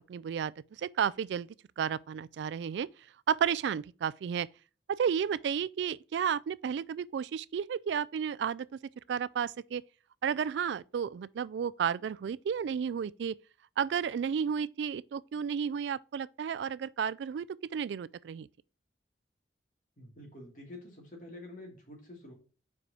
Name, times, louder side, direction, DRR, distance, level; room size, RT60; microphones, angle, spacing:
voice 1, 0.0-1.5 1.8-2.9 3.3-4.5 4.9-8.7 9.1-9.8 10.2-13.3 13.8-17.5 17.7-18.5, right 7 dB, 75° right, 0.3 m, -32 dB
voice 2, 20.0-22.3, left 1 dB, 45° left, 2.6 m, -48 dB
5.0 x 4.7 x 4.9 m
head